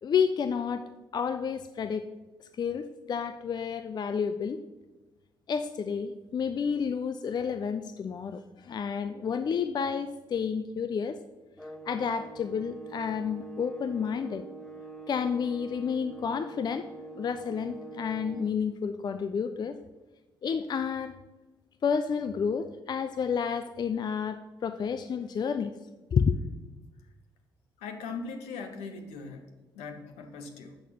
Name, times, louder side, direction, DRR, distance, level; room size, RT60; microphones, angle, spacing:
voice 1, 0.0-0.8 1.1-2.1 2.6-4.6 5.5-11.2 11.9-14.4 15.1-16.9 17.1-19.8 20.4-21.2 21.8-25.7 26.1-26.4, left 6 dB, 40° left, 10 dB, 0.5 m, -30 dB
sound 1, 11.6-18.6, right 3 dB, 5° left, 0.8 m, -44 dB
voice 2, 27.8-29.5 29.8-30.8, left 4 dB, 65° left, 5 dB, 1.0 m, -40 dB
8.1 x 6.5 x 5.8 m, 1.2 s
figure-of-eight pair, 40°, 11 cm